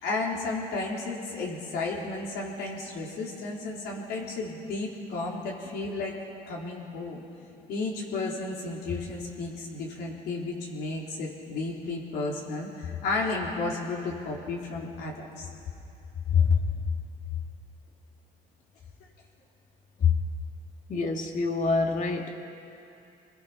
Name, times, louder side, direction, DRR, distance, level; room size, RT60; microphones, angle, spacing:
voice 1, 0.0-6.1 6.5-7.2 7.7-15.5 16.3-16.6, left 4 dB, 75° left, -3 dB, 4.0 m, -31 dB
voice 2, 20.9-22.4, left 4 dB, 45° left, 2 dB, 2.4 m, -26 dB
27.5 x 21.0 x 5.8 m, 2.7 s
cardioid pair, 110°, 17 cm